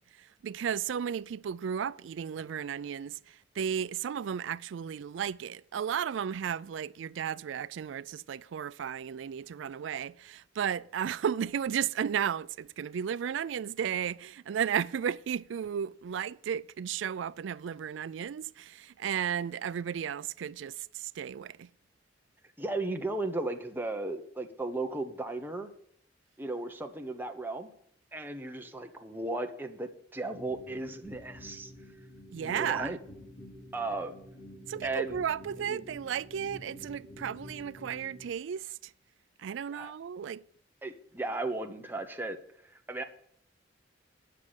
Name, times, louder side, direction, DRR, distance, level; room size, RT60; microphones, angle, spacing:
voice 1, 0.4-3.1 3.6-20.7 21.2-21.7 32.3-32.9 34.7-38.6 39.4-40.4, right 8 dB, 75° right, 0.3 m, -34 dB
voice 2, 22.6-25.7 26.4-27.7 28.1-31.7 32.4-33.0 33.7-34.2 34.8-35.2 35.6-35.9 39.7-39.9 40.8-42.4 42.6-43.0, right 2 dB, 10° right, 0.9 m, -35 dB
sound 1, 30.3-38.3, left 1 dB, 65° left, 2.7 m, -49 dB
9.4 x 6.5 x 7.1 m
head